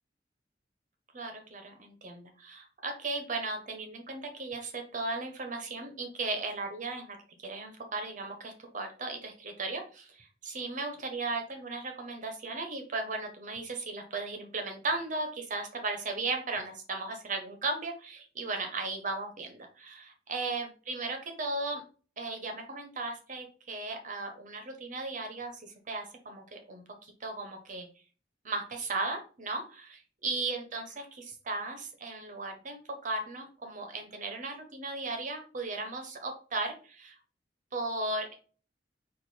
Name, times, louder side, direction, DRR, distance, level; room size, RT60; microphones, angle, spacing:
voice 1, 1.1-21.8 22.2-27.9 28.4-37.2 37.7-38.3, right 3 dB, 45° right, 4 dB, 0.8 m, -36 dB
4.6 x 2.5 x 4.2 m, 0.39 s
head